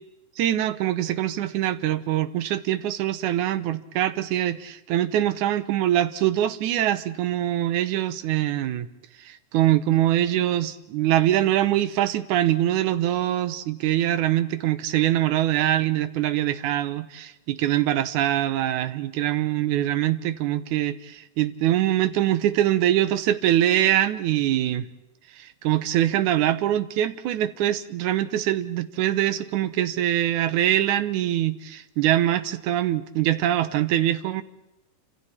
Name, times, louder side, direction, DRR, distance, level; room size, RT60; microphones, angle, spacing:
voice 1, 0.4-8.9 9.2-24.9 25.3-34.4, right 12 dB, 80° right, 12 dB, 2.4 m, -23 dB
29.5 x 27.0 x 4.4 m, 0.88 s
omnidirectional pair, 3.5 m